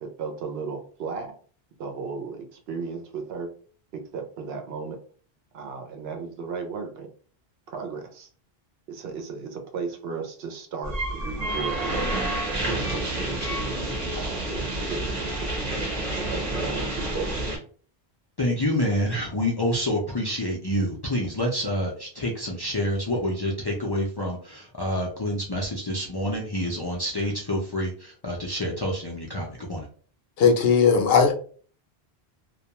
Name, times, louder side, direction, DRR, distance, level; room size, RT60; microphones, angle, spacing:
voice 1, 0.0-1.3 1.8-3.5 4.1-5.0 5.5-7.1 7.7-8.3 8.9-12.1 12.7-15.5 16.1-17.3, right 5 dB, 80° right, 4 dB, 0.9 m, -35 dB
sound 1, 10.8-17.6, right 1 dB, 45° right, 0.9 m, -29 dB
voice 2, 18.4-29.9, equal, 40° left, -2 dB, 0.4 m, -27 dB
voice 3, 30.4-31.3, left 5 dB, 70° left, 3 dB, 0.8 m, -18 dB
2.3 x 2.1 x 2.8 m, 0.42 s
omnidirectional pair, 1.0 m